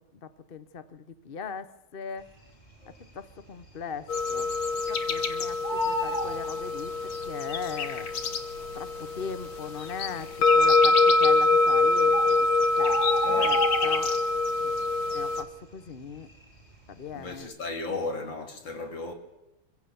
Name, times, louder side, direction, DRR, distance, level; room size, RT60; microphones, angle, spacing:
voice 1, 0.2-2.3 3.1-4.5 4.9-8.1 8.7-12.5 12.7-14.1 14.6-14.7 15.1-16.3 16.9-17.5, left 6 dB, 40° left, 0.9 m, -39 dB
Bird, 2.7-3.3 3.6-3.7 4.0-5.2 5.4-7.3 8.1-8.2 8.9-9.0 9.2-9.3 9.9-10.4 11.3-11.4 11.8-11.9 12.1-14.4 14.7-15.1 15.4-16.7 17.1-17.3, equal, 20° left, 3.6 m, -32 dB
sound 1, 4.1-15.4, left 3 dB, 90° left, 2.4 m, -25 dB
voice 2, 13.3-13.6 17.1-19.1, left 3 dB, 70° left, 3.6 m, -34 dB
24.5 x 16.0 x 7.0 m
omnidirectional pair, 2.1 m